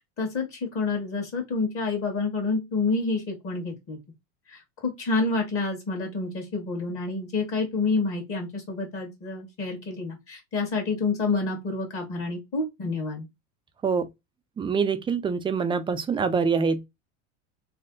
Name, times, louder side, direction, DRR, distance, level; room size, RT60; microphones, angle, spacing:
voice 1, 0.2-4.0 4.5-13.3, left 3 dB, 35° left, 1.7 m, -28 dB
voice 2, 14.6-16.9, right 5 dB, 15° right, 0.4 m, -25 dB
3.3 x 2.1 x 3.7 m
supercardioid pair, 115°, 37 cm